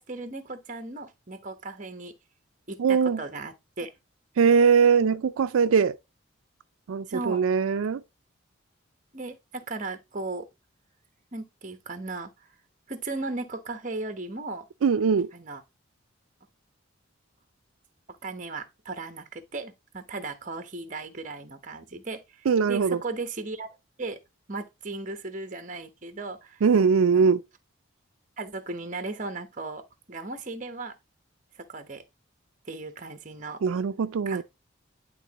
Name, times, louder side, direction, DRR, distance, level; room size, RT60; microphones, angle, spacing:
voice 1, 0.0-2.2 2.7-3.9 7.1-7.4 9.1-10.5 11.3-12.3 12.9-14.7 15.3-15.6 18.2-22.2 22.7-23.7 24.0-24.2 24.5-26.6 27.0-27.3 28.4-29.8 30.1-30.9 31.6-32.0 32.7-33.6 34.3-34.4, right 3 dB, 40° right, 1.0 m, -36 dB
voice 2, 2.8-3.2 4.4-6.0 6.9-8.0 14.8-15.3 22.5-23.0 26.6-27.4 33.6-34.4, right 6 dB, 90° right, 0.4 m, -21 dB
11.0 x 3.7 x 2.9 m
head